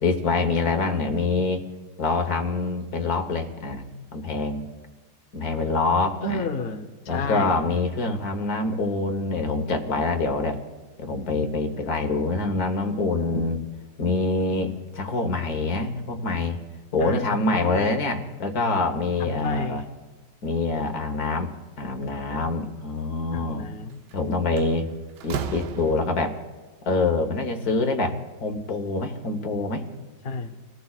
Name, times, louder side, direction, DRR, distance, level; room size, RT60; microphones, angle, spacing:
voice 1, 0.0-1.6 2.0-3.9 4.1-4.7 5.3-6.5 7.1-10.6 11.0-13.6 14.0-16.6 16.9-19.8 20.4-21.5 21.8-23.7 24.1-24.9 25.2-26.4 26.8-29.8, left 3 dB, 60° left, 6 dB, 1.7 m, -25 dB
voice 2, 6.2-7.5 17.0-17.2 17.5-18.0 19.2-19.8 23.3-24.0 30.2-30.6, left 3 dB, 40° left, 5 dB, 0.9 m, -30 dB
Slam, 23.9-24.1 24.6-26.4, right 7 dB, 75° right, 1.3 m, -34 dB
30.0 x 18.5 x 2.4 m, 1.3 s
omnidirectional pair, 1.9 m